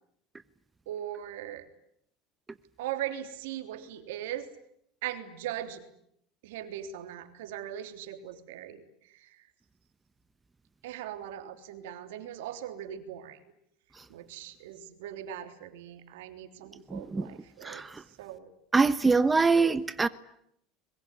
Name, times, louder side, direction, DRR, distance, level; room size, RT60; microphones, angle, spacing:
voice 1, 0.8-1.7 2.8-4.5 5.0-5.8 6.4-9.5 10.8-13.4 14.1-17.8 18.2-18.5, right 11 dB, 80° right, 3.4 m, -39 dB
voice 2, 16.9-17.3 17.6-18.0 18.7-20.1, right 4 dB, 20° right, 1.1 m, -24 dB
25.5 x 22.5 x 9.9 m
supercardioid pair, 90°, 0 cm